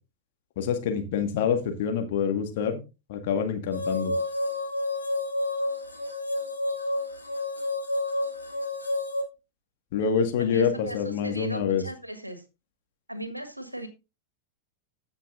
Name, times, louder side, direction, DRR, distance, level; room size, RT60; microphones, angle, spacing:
voice 1, 0.6-2.8 3.1-4.1 9.9-11.8, left 7 dB, 55° left, 5 dB, 1.8 m, -26 dB
sound 1, 3.7-9.2, left 2 dB, 85° left, 2.0 m, -30 dB
voice 2, 10.4-12.4 13.1-13.9, right 1 dB, 90° right, 9 dB, 1.5 m, -37 dB
15.5 x 6.0 x 2.6 m, 0.27 s
figure-of-eight pair, 90°, 0 cm